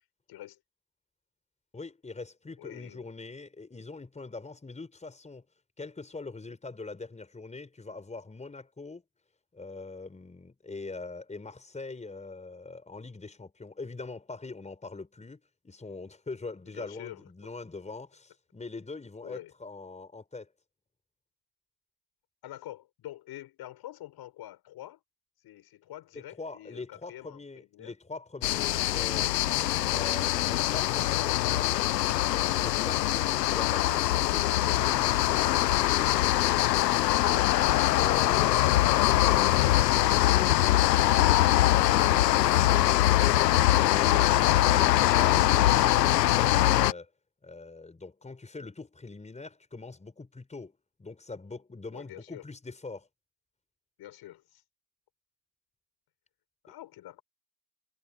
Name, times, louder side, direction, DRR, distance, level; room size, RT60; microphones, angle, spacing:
voice 1, 0.3-0.6 2.6-3.1 16.7-17.2 19.2-19.5 22.4-25.0 25.4-27.9 37.3-37.6 51.9-52.4 54.0-54.6 56.6-57.2, left 14 dB, 50° left, 7.5 m, -46 dB
voice 2, 1.7-5.5 5.8-9.0 9.5-20.5 26.4-29.4 29.9-36.2 43.8-47.1 47.4-50.7 51.0-53.1, left 3 dB, 15° left, 5.9 m, -43 dB
sound 1, 28.4-46.9, left 14 dB, 90° left, 0.9 m, -23 dB
hypercardioid pair, 85°, 48 cm